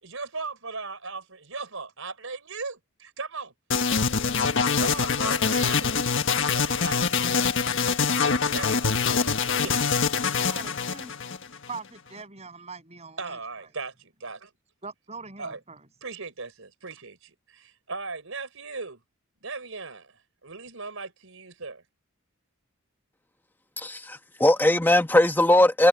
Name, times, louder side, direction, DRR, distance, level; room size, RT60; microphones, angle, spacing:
voice 1, 0.0-3.5 4.8-5.9 6.3-7.5 8.2-8.9 9.3-9.9 13.2-14.5 15.4-15.6 16.0-19.0 19.4-21.8, right 4 dB, 70° right, 4.7 m, -38 dB
sound 1, 3.7-11.8, left 5 dB, 60° left, 1.6 m, -24 dB
voice 2, 10.0-11.1 11.7-13.7 14.8-15.9, right 4 dB, 30° right, 7.8 m, -42 dB
voice 3, 23.8-25.9, left 1 dB, 10° left, 1.3 m, -20 dB
head